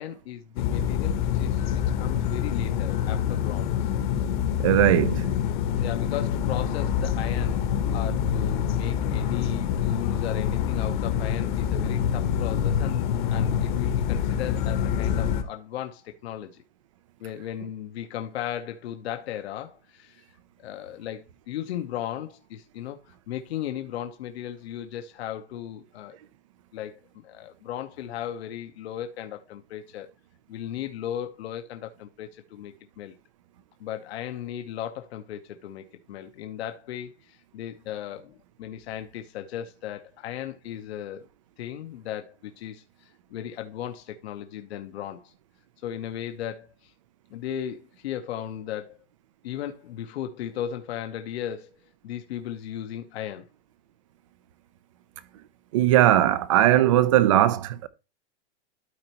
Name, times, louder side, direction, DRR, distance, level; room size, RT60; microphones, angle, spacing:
voice 1, 0.0-3.9 5.7-16.6 17.2-20.3 20.6-26.2 26.7-30.1 30.5-33.2 33.8-41.3 41.6-45.3 45.8-46.9 47.3-49.0 49.4-51.7 52.0-53.5, left 10 dB, 65° left, 1.0 m, -36 dB
sound 1, 0.6-15.4, left 8 dB, 45° left, 1.2 m, -26 dB
voice 2, 4.6-5.3 55.7-57.9, right 13 dB, 30° right, 0.4 m, -19 dB
12.5 x 4.3 x 2.9 m
supercardioid pair, 170°, 35 cm